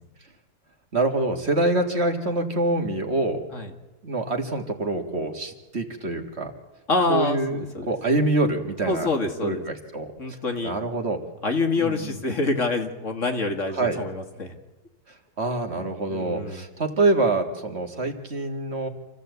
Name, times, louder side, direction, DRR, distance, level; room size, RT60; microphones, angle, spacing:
voice 1, 0.9-3.4 4.0-6.5 7.1-9.1 9.4-10.4 10.6-11.2 11.8-12.2 13.7-14.0 15.1-18.9, right 2 dB, 45° right, 4 dB, 2.1 m, -25 dB
voice 2, 6.9-7.9 8.9-9.6 10.2-10.8 11.4-14.6 15.8-16.6, left 3 dB, 55° left, 5 dB, 2.1 m, -26 dB
27.0 x 15.0 x 8.1 m, 1.2 s
omnidirectional pair, 1.6 m